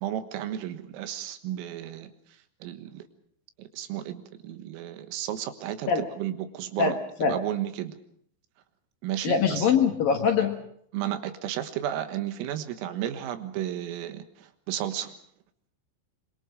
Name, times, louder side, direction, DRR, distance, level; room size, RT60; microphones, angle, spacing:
voice 1, 0.0-2.1 2.6-3.0 3.6-7.0 7.3-8.0 9.0-9.7 10.9-15.1, right 11 dB, 85° right, 9 dB, 4.0 m, -33 dB
voice 2, 6.8-7.4 9.2-10.6, left 6 dB, 60° left, 4 dB, 2.5 m, -23 dB
26.0 x 23.5 x 5.2 m, 0.67 s
omnidirectional pair, 5.9 m